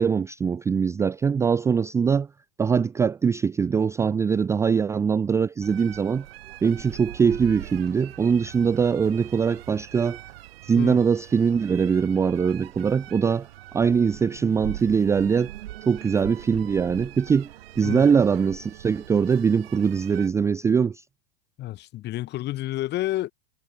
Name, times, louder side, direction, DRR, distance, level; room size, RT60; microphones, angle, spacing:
voice 1, 0.0-2.3 2.6-6.2 6.6-10.2 10.6-13.5 13.7-15.5 15.9-17.5 17.8-21.0, right 6 dB, 10° right, 0.5 m, -22 dB
Chinese viola player, 5.6-20.3, right 15 dB, 65° right, 3.9 m, -42 dB
voice 2, 21.6-23.3, left 15 dB, 35° left, 3.0 m, -30 dB
hypercardioid pair, 130°, 31 cm